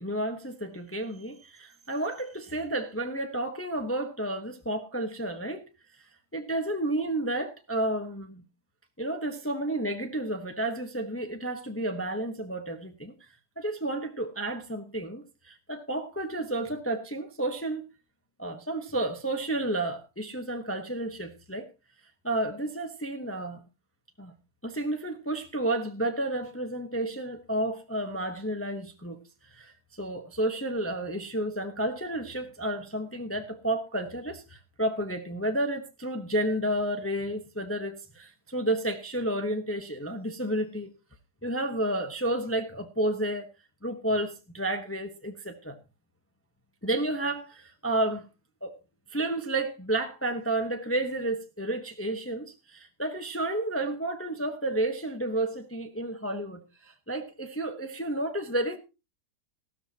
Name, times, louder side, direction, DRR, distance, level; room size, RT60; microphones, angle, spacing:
voice 1, 0.0-5.7 6.3-8.4 9.0-13.1 13.6-17.9 18.4-21.7 22.2-23.6 24.2-24.3 24.6-29.2 29.5-40.9 41.4-43.5 43.8-45.8 46.8-48.3 48.6-48.8 49.1-58.8, right 1 dB, 10° left, 0.9 m, -31 dB
15.5 x 13.5 x 2.8 m
omnidirectional pair, 1.8 m